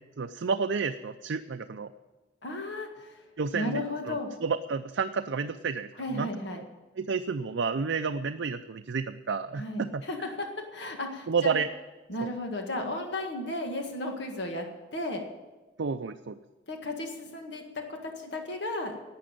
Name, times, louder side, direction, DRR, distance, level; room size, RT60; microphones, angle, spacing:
voice 1, 0.2-1.9 3.4-6.3 7.0-10.0 11.3-11.7 12.2-12.3 15.8-16.4, right 5 dB, 70° right, 7 dB, 0.5 m, -30 dB
voice 2, 2.4-3.2 3.5-4.3 6.0-6.6 9.6-11.5 12.1-15.2 16.7-19.0, left 1 dB, 65° left, 3 dB, 1.8 m, -34 dB
11.5 x 8.7 x 9.0 m, 1.2 s
head